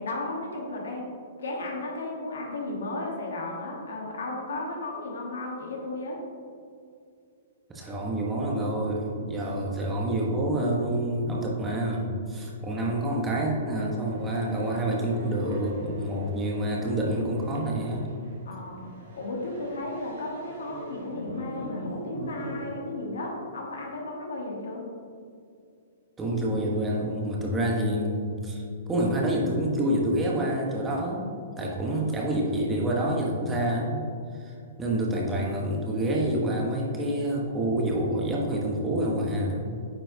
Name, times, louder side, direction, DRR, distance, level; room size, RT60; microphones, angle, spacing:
voice 1, 0.0-6.2 18.4-24.8, left 2 dB, 75° left, 0 dB, 1.2 m, -34 dB
voice 2, 7.7-18.1 26.2-28.6 28.9-34.0 34.4-39.8, right 1 dB, 15° right, -2 dB, 1.1 m, -27 dB
sound 1, 13.8-22.8, right 1 dB, 60° right, 1.2 m, -43 dB
8.9 x 4.4 x 2.7 m, 2.4 s
hypercardioid pair, 120°, 0 cm